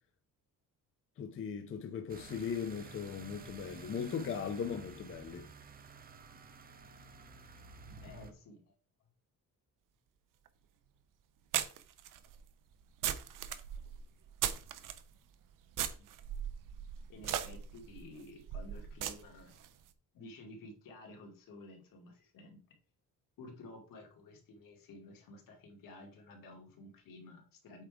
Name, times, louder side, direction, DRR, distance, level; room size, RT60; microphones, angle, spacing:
voice 1, 1.2-5.5, left 7 dB, 40° left, 0.6 m, -38 dB
sound 1, 2.1-8.3, right 4 dB, 25° right, 0.6 m, -52 dB
voice 2, 8.0-8.7 16.0-16.1 17.1-19.6 20.1-22.6 23.4-27.8, left 2 dB, 70° left, 2.5 m, -53 dB
sound 2, 10.5-10.6 11.5-15.0 15.7-19.7, right 10 dB, 65° right, 0.8 m, -38 dB
8.3 x 4.7 x 3.7 m
cardioid pair, 175°, 34 cm